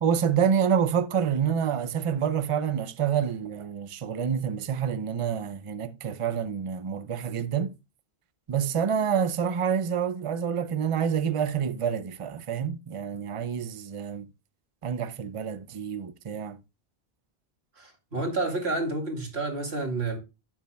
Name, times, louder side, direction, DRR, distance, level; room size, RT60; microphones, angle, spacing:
voice 1, 0.0-7.7 8.5-14.3 14.8-16.6, right 7 dB, 40° right, 0.6 m, -27 dB
voice 2, 17.8-20.2, right 2 dB, 90° right, 2.6 m, -30 dB
12.0 x 8.4 x 2.2 m
omnidirectional pair, 1.0 m